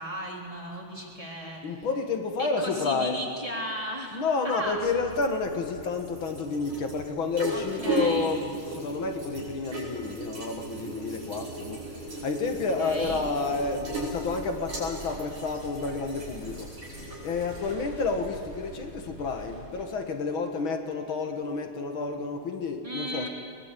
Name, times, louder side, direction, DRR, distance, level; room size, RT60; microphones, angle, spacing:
voice 1, 0.0-1.8 2.4-4.9 7.5-8.4 12.5-13.3 22.8-23.3, equal, 15° right, -2 dB, 3.6 m, -36 dB
voice 2, 1.6-3.2 4.1-11.9 12.2-23.3, left 4 dB, 65° left, 5 dB, 2.5 m, -30 dB
sound 1, 4.5-19.5, right 1 dB, 75° right, 7.0 m, -37 dB
sound 2, 12.0-19.9, right 1 dB, 40° right, 5.5 m, -47 dB
22.5 x 21.0 x 8.4 m, 2.3 s
omnidirectional pair, 2.4 m